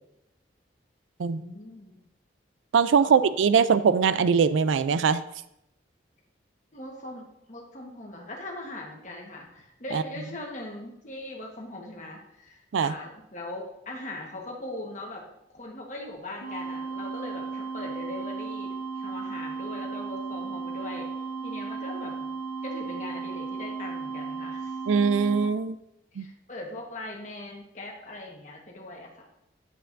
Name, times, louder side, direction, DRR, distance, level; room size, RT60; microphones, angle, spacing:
voice 1, 1.3-2.0 3.0-3.2 6.7-15.2 15.5-21.1 21.4-22.3 22.6-24.8 26.1-29.1, left 1 dB, 40° left, 0 dB, 1.3 m, -40 dB
voice 2, 2.7-5.2 9.9-10.0 12.7-12.9 24.9-25.8 26.2-26.3, right 6 dB, 85° right, 14 dB, 0.4 m, -22 dB
sound 1, 16.4-25.5, right 4 dB, 65° left, 0.9 m, -35 dB
8.7 x 7.7 x 2.6 m, 0.82 s
head